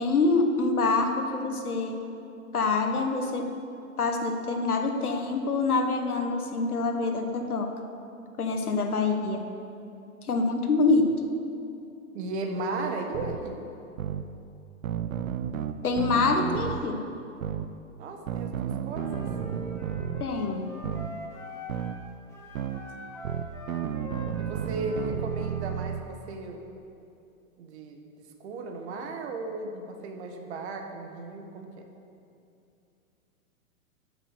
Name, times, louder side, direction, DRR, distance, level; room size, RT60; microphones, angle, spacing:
voice 1, 0.0-2.0 2.5-3.5 4.0-7.7 8.4-9.5 10.2-11.1 15.8-17.0 20.2-20.7, left 3 dB, 90° left, 5 dB, 1.4 m, -26 dB
voice 2, 12.1-13.7 18.0-19.3 24.4-26.6 27.6-31.8, right 3 dB, 50° right, 4 dB, 1.4 m, -35 dB
sound 1, 13.1-13.4 14.0-14.2 14.8-16.8 17.4-17.7 18.3-20.2 20.8-21.1 21.7-22.0 22.5-22.8 23.2-26.0, right 9 dB, 70° right, 0.8 m, -32 dB
Wind instrument woodwind instrument, 18.9-22.0 22.3-25.7, left 1 dB, 5° left, 1.6 m, -43 dB
12.0 x 6.4 x 6.7 m, 2.7 s
hypercardioid pair, 130°, 43 cm